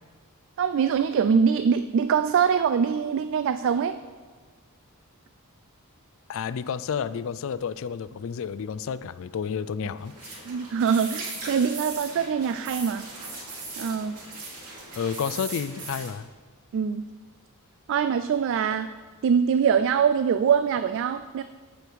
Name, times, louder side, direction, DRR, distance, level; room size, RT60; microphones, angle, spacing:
voice 1, 0.6-4.0 10.5-13.1 13.8-14.2 16.7-17.0 17.9-18.9 19.2-21.4, right 7 dB, 60° right, 11 dB, 0.3 m, -23 dB
voice 2, 6.3-10.1 14.9-16.3, left 7 dB, 60° left, 16 dB, 0.4 m, -30 dB
sound 1, 10.0-16.1, right 3 dB, 85° right, 2.6 m, -39 dB
14.5 x 5.2 x 4.6 m, 1.5 s
head